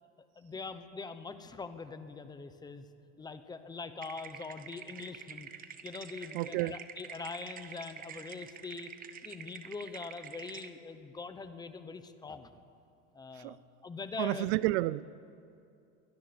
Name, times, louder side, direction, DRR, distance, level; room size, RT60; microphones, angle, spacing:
voice 1, 0.4-2.9 3.2-5.5 5.8-8.9 9.2-12.5 13.1-14.5, left 4 dB, 10° left, 0.9 m, -43 dB
sound 1, 4.0-10.7, right 8 dB, 25° right, 1.0 m, -48 dB
voice 2, 6.3-6.8 13.4-13.6 14.2-15.1, right 17 dB, 60° right, 0.5 m, -30 dB
22.5 x 13.0 x 9.6 m
supercardioid pair, 155°, 36 cm